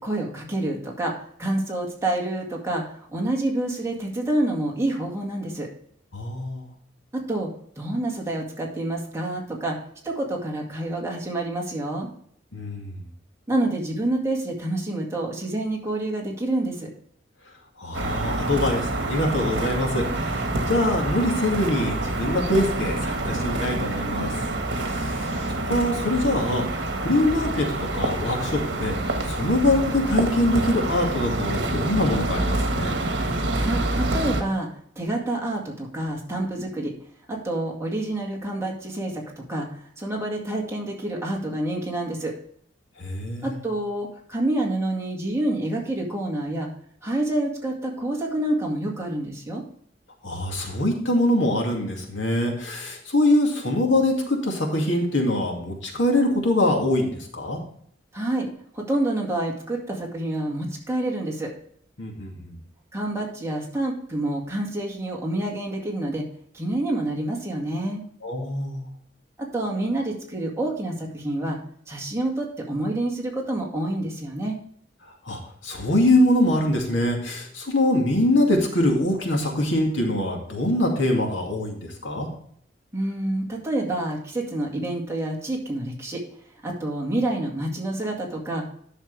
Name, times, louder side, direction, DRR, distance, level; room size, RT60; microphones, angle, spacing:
voice 1, 0.0-5.7 7.1-7.5 7.8-9.8 10.0-12.1 13.5-16.9 33.5-34.7 35.0-36.9 37.3-42.4 43.4-46.7 47.0-49.6 58.1-58.5 58.7-61.5 62.9-66.3 66.5-68.0 69.4-71.6 71.9-74.6 82.9-86.2 86.6-88.7, right 1 dB, 15° right, -1 dB, 2.1 m, -28 dB
voice 2, 6.1-6.7 12.5-13.0 17.8-24.4 24.7-29.0 29.2-32.9 43.0-43.6 50.2-57.6 62.0-62.6 68.2-68.9 75.2-82.3, left 1 dB, 80° left, 1 dB, 2.3 m, -24 dB
sound 1, 17.9-34.4, right 2 dB, 65° right, 1.6 m, -27 dB
10.5 x 6.7 x 3.3 m, 0.62 s
head